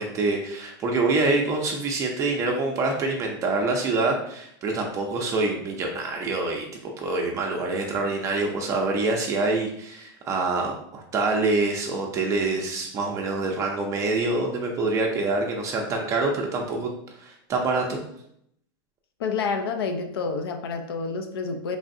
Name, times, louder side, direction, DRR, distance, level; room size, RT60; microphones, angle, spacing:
voice 1, 0.0-6.6 7.0-18.0, right 3 dB, 25° right, 1 dB, 0.5 m, -26 dB
voice 2, 19.2-21.8, left 4 dB, 85° left, 6 dB, 0.5 m, -28 dB
3.6 x 3.3 x 2.6 m, 0.72 s
supercardioid pair, 140°, 12 cm